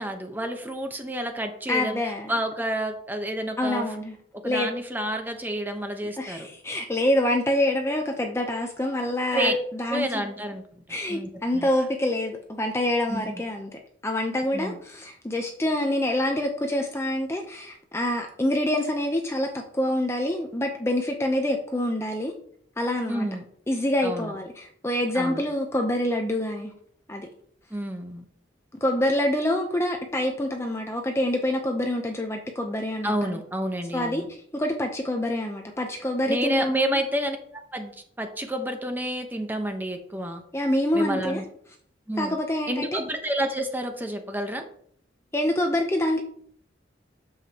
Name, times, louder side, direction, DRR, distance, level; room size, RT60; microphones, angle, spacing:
voice 1, 0.0-2.0 2.3-3.9 4.4-6.5 9.3-9.5 9.9-11.7 13.1-13.4 14.5-14.8 23.1-23.4 24.0-24.3 25.1-25.4 27.7-28.2 33.0-34.3 36.3-40.4 40.9-41.4 42.1-42.4 42.7-44.6, right 1 dB, 10° right, 5 dB, 0.9 m, -29 dB
voice 2, 1.7-2.3 3.6-4.2 4.4-4.7 6.2-10.2 10.9-13.7 14.0-22.3 22.8-23.3 23.7-26.7 27.1-27.3 28.8-33.4 33.9-34.2 34.5-36.9 40.5-41.4 42.2-43.0 45.3-46.2, left 1 dB, 15° left, 3 dB, 0.6 m, -26 dB
8.9 x 7.2 x 2.9 m, 0.63 s
head